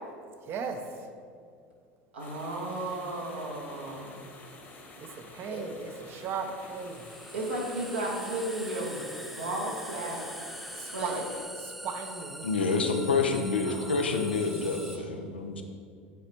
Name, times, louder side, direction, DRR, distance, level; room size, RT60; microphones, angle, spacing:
voice 1, 0.5-0.8 5.0-7.1 10.8-11.3 11.6-12.5, right 5 dB, 45° right, 6 dB, 0.6 m, -37 dB
voice 2, 2.1-4.2 5.5-5.6 7.3-9.0 9.3-10.4 10.9-11.2 13.6-15.0, right 1 dB, 85° right, -3 dB, 1.3 m, -35 dB
sound 1, 2.2-11.4, left 2 dB, 35° left, 1.1 m, -50 dB
sound 2, 4.5-4.6 6.6-15.0, equal, ahead, 0.4 m, -44 dB
voice 3, 12.4-15.6, left 4 dB, 90° left, 5 dB, 0.5 m, -28 dB
8.2 x 4.1 x 3.0 m, 2.3 s
hypercardioid pair, 75°, 6 cm